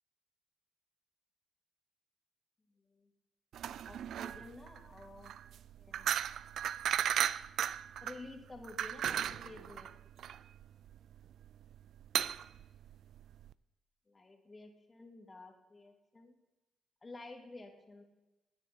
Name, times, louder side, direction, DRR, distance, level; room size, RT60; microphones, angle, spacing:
voice 1, 2.8-3.1 3.8-5.3 5.8-6.2 8.0-9.9 14.1-16.3 17.0-18.0, left 2 dB, 25° left, 3 dB, 2.5 m, -52 dB
sound 1, 3.5-13.5, right 10 dB, 70° right, 0.4 m, -36 dB
16.0 x 9.6 x 4.3 m, 1.0 s
cardioid pair, 90°, 0 cm